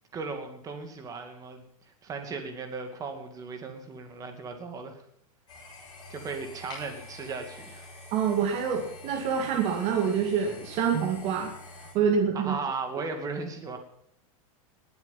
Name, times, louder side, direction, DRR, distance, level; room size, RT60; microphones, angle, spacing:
voice 1, 0.1-1.6 2.0-5.0 6.1-7.9 12.3-13.8, right 4 dB, 20° right, 5 dB, 2.4 m, -36 dB
sound 1, 5.5-11.9, left 2 dB, 25° left, 7.2 m, -46 dB
voice 2, 8.1-11.5 11.9-12.6, right 7 dB, 35° right, 1 dB, 2.3 m, -26 dB
20.0 x 8.0 x 7.3 m, 0.71 s
supercardioid pair, 160°, 18 cm